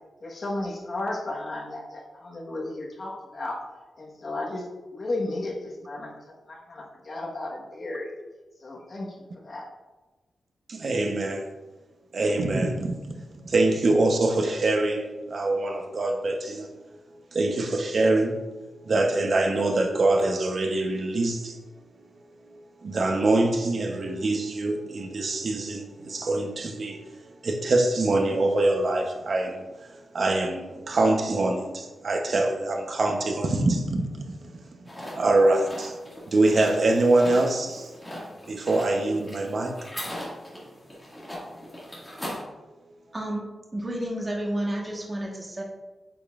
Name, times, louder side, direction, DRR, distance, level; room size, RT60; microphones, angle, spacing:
voice 1, 0.2-3.6 4.0-8.1 8.6-9.7, left 2 dB, 40° left, -2 dB, 1.4 m, -34 dB
voice 2, 10.7-11.5 12.1-13.1 13.4-16.7 17.3-18.4 18.8-21.6 22.8-27.0 27.4-34.6 35.1-36.0 36.3-37.9 38.5-39.8, right 2 dB, 50° right, 4 dB, 0.9 m, -24 dB
sound 1, 34.9-42.4, equal, 10° left, 2.1 m, -39 dB
voice 3, 43.7-45.6, right 1 dB, 20° right, -2 dB, 1.4 m, -30 dB
8.7 x 5.3 x 2.5 m, 1.2 s
wide cardioid pair, 145°, 0 cm